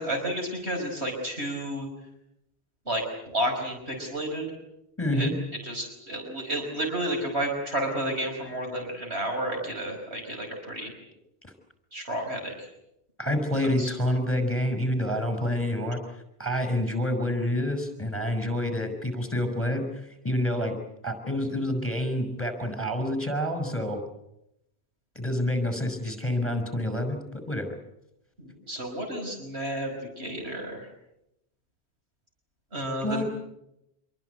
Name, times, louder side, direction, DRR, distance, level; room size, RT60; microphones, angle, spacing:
voice 1, 0.0-1.9 2.9-4.5 5.1-5.3 5.6-10.9 11.9-12.7 13.6-13.9 28.4-30.9 32.7-33.2, right 1 dB, 75° right, 2 dB, 5.5 m, -31 dB
voice 2, 5.0-5.3 11.4-11.5 13.2-16.0 16.4-20.7 21.0-24.0 25.2-27.7 33.0-33.2, left 1 dB, 10° left, 7 dB, 5.9 m, -28 dB
27.0 x 22.5 x 8.3 m, 0.84 s
omnidirectional pair, 1.1 m